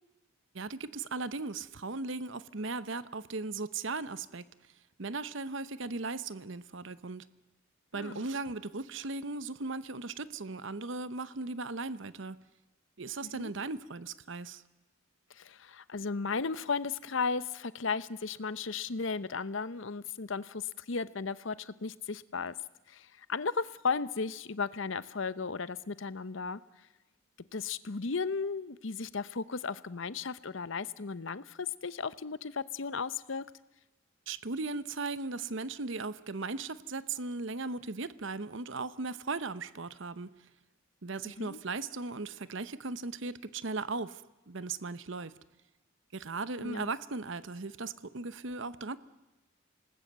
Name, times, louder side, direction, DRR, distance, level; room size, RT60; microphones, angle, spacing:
voice 1, 0.5-4.4 5.0-7.3 7.9-12.4 13.0-14.6 34.3-40.3 41.0-45.3 46.1-49.0, right 3 dB, 60° right, 15 dB, 0.9 m, -37 dB
voice 2, 7.9-8.3 13.3-13.5 15.3-22.5 22.9-26.6 27.5-33.4 41.2-41.6 46.6-46.9, left 4 dB, 60° left, 16 dB, 0.8 m, -35 dB
27.0 x 19.5 x 8.1 m, 1.1 s
head